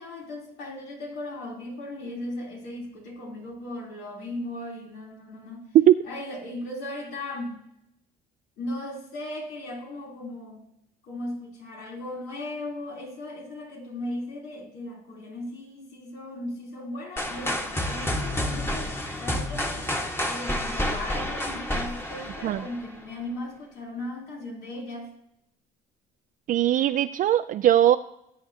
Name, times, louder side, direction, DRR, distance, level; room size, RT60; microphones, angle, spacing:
voice 1, 0.0-5.6 6.1-7.6 8.6-10.6 11.0-25.1, left 1 dB, 85° left, 3.3 m, -37 dB
sound 1, 17.2-23.1, left 1 dB, 15° left, 1.4 m, -30 dB
voice 2, 26.5-28.0, right 12 dB, 55° right, 0.4 m, -20 dB
19.5 x 8.4 x 2.8 m
cardioid pair, 110°, 17 cm